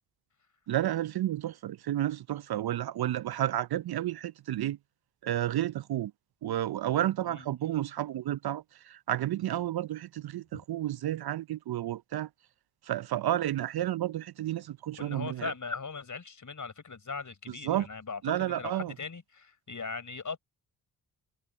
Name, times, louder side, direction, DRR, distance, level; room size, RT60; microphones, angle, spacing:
voice 1, 0.7-4.8 5.2-6.1 6.4-12.3 12.8-15.5 17.5-17.9 18.2-18.9, right 13 dB, 50° right, 0.7 m, -31 dB
voice 2, 15.0-20.4, left 4 dB, 40° left, 5.6 m, -39 dB
hypercardioid pair, 45°, 47 cm